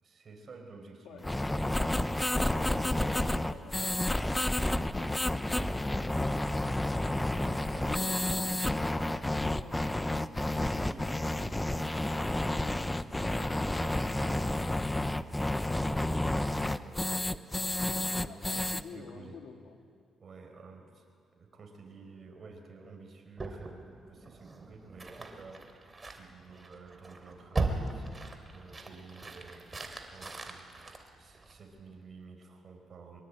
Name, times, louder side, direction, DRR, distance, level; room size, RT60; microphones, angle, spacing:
voice 1, 0.0-1.2 1.5-3.9 7.4-8.6 10.6-15.4 15.7-19.3 20.2-21.1 21.3-30.9 31.2-33.2, right 4 dB, 45° right, 3 dB, 5.2 m, -51 dB
voice 2, 1.0-1.8 3.5-5.6 7.4-10.3 18.2-19.8, left 6 dB, 80° left, 4 dB, 2.6 m, -50 dB
sound 1, 1.2-18.8, left 1 dB, 10° left, 0.8 m, -30 dB
sound 2, 23.4-31.8, right 3 dB, 25° right, 3.1 m, -39 dB
23.5 x 22.5 x 8.9 m, 2.3 s
cardioid pair, 85°, 0 cm